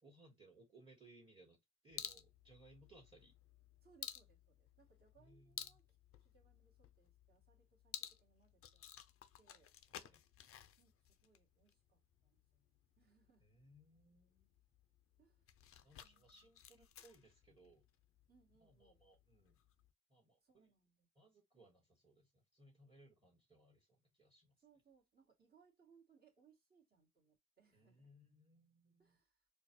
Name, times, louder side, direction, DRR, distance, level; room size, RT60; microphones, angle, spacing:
voice 1, 0.0-1.6 1.8-3.4 5.2-5.6 9.9-10.2 13.4-14.5 15.8-17.8 18.6-19.6 20.1-20.7 21.1-24.5 27.7-29.2, right 1 dB, 15° right, 1.8 m, -66 dB
sound 1, 1.9-19.9, left 10 dB, 50° left, 0.5 m, -56 dB
voice 2, 3.8-5.8 6.2-8.9 9.3-9.7 10.8-13.5 15.2-15.5 16.0-16.5 18.3-19.0 20.4-21.3 24.6-28.1 29.0-29.5, right 6 dB, 30° right, 1.8 m, -72 dB
4.4 x 2.3 x 3.1 m
cardioid pair, 90°, 30 cm